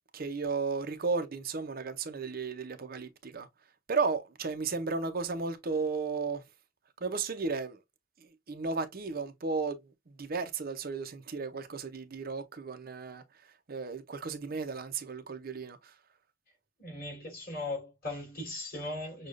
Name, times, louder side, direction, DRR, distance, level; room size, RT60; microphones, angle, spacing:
voice 1, 0.1-3.5 3.9-6.4 7.0-7.8 8.2-16.0, right 4 dB, 45° right, 0.6 m, -34 dB
voice 2, 16.8-19.3, left 2 dB, 45° left, 2.8 m, -38 dB
6.4 x 2.3 x 2.5 m
head